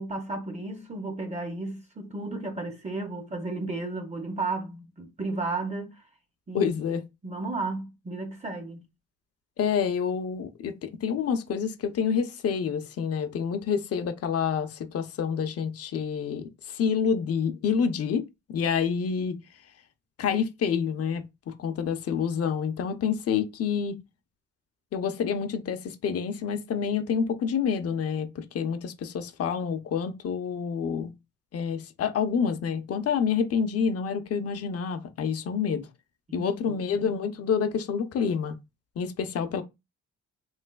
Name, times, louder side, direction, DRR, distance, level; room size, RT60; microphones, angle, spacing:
voice 1, 0.0-6.0 6.5-8.8 36.3-36.8, right 3 dB, 25° right, 0.6 m, -34 dB
voice 2, 6.5-7.0 9.6-19.4 20.2-24.0 24.9-31.1 31.5-35.9 36.3-38.6 39.0-39.6, left 6 dB, 50° left, 0.6 m, -28 dB
3.2 x 3.1 x 2.2 m
cardioid pair, 90°, 30 cm